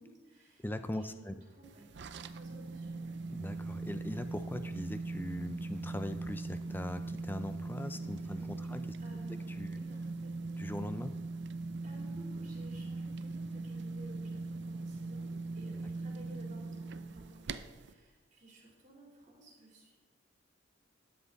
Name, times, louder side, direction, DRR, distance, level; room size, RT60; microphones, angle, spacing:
voice 1, 0.0-0.6 0.9-3.2 8.2-10.5 11.8-19.9, right 1 dB, 40° right, -3 dB, 3.6 m, -56 dB
voice 2, 0.6-1.3 3.3-8.8 9.6-9.8 10.6-11.1, left 1 dB, 10° left, 9 dB, 0.5 m, -40 dB
sound 1, 1.6-17.9, right 3 dB, 60° right, 0.5 m, -40 dB
13.0 x 9.7 x 4.1 m, 1.3 s
head